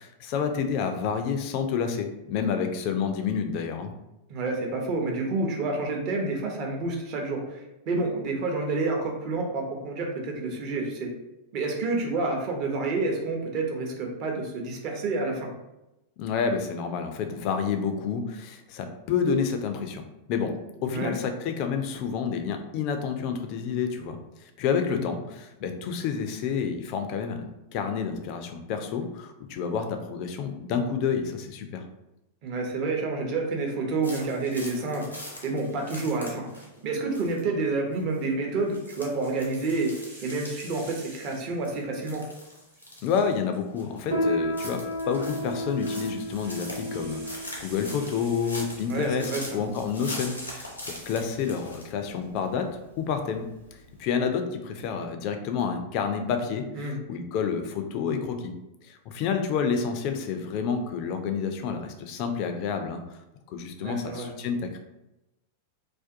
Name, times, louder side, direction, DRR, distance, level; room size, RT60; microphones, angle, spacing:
voice 1, 0.0-3.9 16.2-20.0 20.3-27.4 27.7-31.8 43.0-52.7 53.0-58.5 58.8-63.0 63.5-64.8, left 6 dB, 45° left, 6 dB, 0.3 m, -29 dB
voice 2, 4.3-11.1 11.5-15.5 20.8-21.2 24.9-25.0 32.4-36.5 36.8-39.9 40.2-42.2 48.9-49.6 56.7-57.0 63.8-64.4, right 3 dB, 40° right, 0 dB, 0.6 m, -29 dB
sound 1, 34.0-36.8 37.1-37.4 37.9-38.2 38.7-41.4 41.6-43.3 43.8-44.1 44.4-51.9, left 1 dB, 85° left, 0.6 m, -42 dB
sound 2, 38.4-38.6 39.1-41.8 42.1-43.9 45.1-49.6 49.9-51.6 52.0-52.4, right 2 dB, 70° right, 0.9 m, -49 dB
Piano, 44.1-54.0, equal, 90° right, 0.8 m, -34 dB
2.5 x 2.2 x 2.5 m, 0.94 s
figure-of-eight pair, 90°, 0 cm